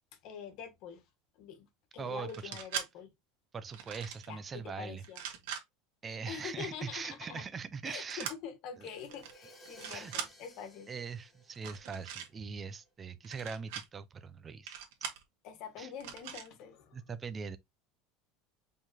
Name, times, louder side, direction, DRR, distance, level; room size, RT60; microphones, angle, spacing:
voice 1, 0.2-1.0 1.4-1.7 1.9-3.1 4.3-5.2 6.3-7.4 7.8-10.9 15.4-17.0, left 7 dB, 50° left, 1.5 m, -45 dB
voice 2, 2.0-2.6 3.5-5.0 6.0-8.3 8.8-8.9 9.9-10.1 10.9-14.8 15.8-15.9 16.9-17.6, right 5 dB, 20° right, 0.5 m, -41 dB
sound 1, 2.3-2.9 3.7-4.3 5.0-5.6 8.1-8.4 9.1-9.3 9.7-10.3 11.5-12.3 13.2-13.8 14.7-15.2 16.0-16.5, right 9 dB, 75° right, 1.6 m, -41 dB
Crash cymbal, 8.9-12.6, equal, 10° left, 2.0 m, -57 dB
5.1 x 3.8 x 2.7 m
cardioid pair, 160°, 0 cm